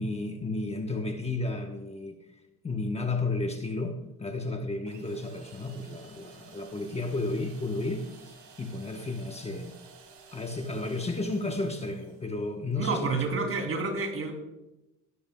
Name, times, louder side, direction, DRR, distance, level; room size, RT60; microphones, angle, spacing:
voice 1, 0.0-2.2 2.6-9.7 10.3-13.0, left 2 dB, 20° left, 4 dB, 1.0 m, -32 dB
sound 1, 4.9-12.5, right 5 dB, 70° right, 3.6 m, -53 dB
voice 2, 12.8-14.3, right 3 dB, 40° right, 4 dB, 3.0 m, -29 dB
16.0 x 12.5 x 2.3 m, 0.95 s
cardioid pair, 110°, 33 cm